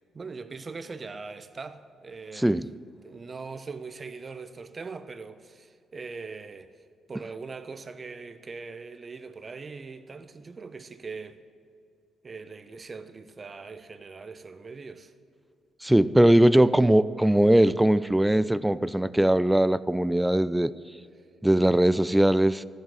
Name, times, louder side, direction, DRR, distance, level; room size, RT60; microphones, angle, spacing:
voice 1, 0.1-2.6 3.0-6.7 7.1-11.4 12.2-15.1, right 4 dB, 40° right, 0.9 m, -41 dB
voice 2, 15.8-20.7 21.4-22.6, right 1 dB, 5° right, 0.5 m, -20 dB
14.5 x 7.7 x 9.3 m
hypercardioid pair, 50°, 0 cm